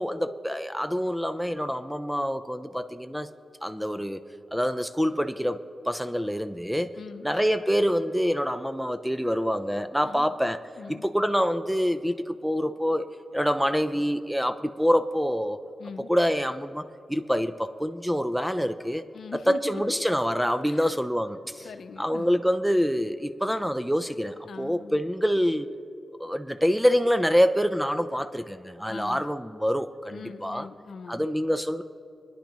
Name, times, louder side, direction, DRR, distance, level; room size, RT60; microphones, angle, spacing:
voice 1, 0.0-3.3 3.6-4.2 4.5-7.0 7.2-10.6 10.9-13.1 13.3-15.6 16.1-19.0 19.3-21.7 22.0-25.7 26.2-30.2 30.4-30.7 31.1-31.8, equal, ahead, 10 dB, 0.4 m, -26 dB
voice 2, 7.0-7.3 10.0-10.3 10.8-11.1 15.8-16.1 19.1-20.0 20.7-21.0 21.6-22.4 24.5-25.0 28.9-29.2 30.1-31.3, left 5 dB, 75° left, 8 dB, 0.7 m, -41 dB
23.0 x 10.5 x 3.0 m, 2.5 s
wide cardioid pair, 110°, 0 cm